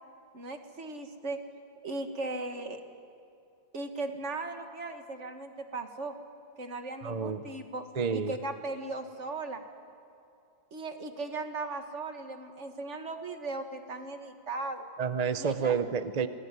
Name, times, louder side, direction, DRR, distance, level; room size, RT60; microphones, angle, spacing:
voice 1, 0.3-1.4 1.8-2.8 3.7-6.1 6.6-9.6 10.7-14.9 15.4-15.8, right 3 dB, 40° right, 6 dB, 1.9 m, -37 dB
voice 2, 7.0-7.4 8.0-8.4 15.0-16.3, right 6 dB, 55° right, 10 dB, 0.4 m, -29 dB
27.5 x 20.5 x 9.8 m, 2.7 s
omnidirectional pair, 2.0 m